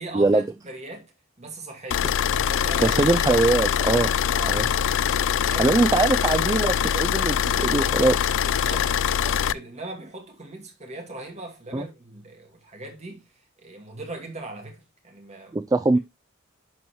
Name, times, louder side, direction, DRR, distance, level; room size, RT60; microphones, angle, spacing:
voice 1, 0.0-3.2 4.3-4.7 5.2-5.7 8.4-15.6 15.9-16.0, right 2 dB, 35° right, 2.5 m, -40 dB
sound 1, 1.9-9.5, left 9 dB, 65° left, 0.4 m, -23 dB
voice 2, 2.8-4.1 4.5-4.6 5.6-8.3 11.7-11.9 15.5-16.0, right 3 dB, 15° right, 0.3 m, -22 dB
10.5 x 4.6 x 3.1 m
head